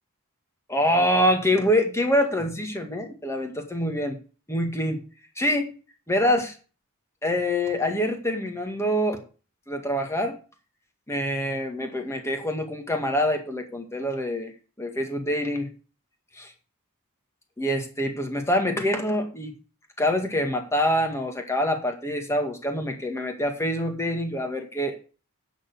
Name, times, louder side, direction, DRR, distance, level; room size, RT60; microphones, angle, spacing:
voice 1, 0.7-4.2 4.5-5.0 5.4-5.7 6.1-6.5 7.2-9.2 9.7-10.4 11.1-14.5 14.8-15.7 16.3-16.5 17.6-19.6 20.0-25.0, equal, 10° left, 4 dB, 2.0 m, -25 dB
9.5 x 6.6 x 6.8 m, 0.36 s
head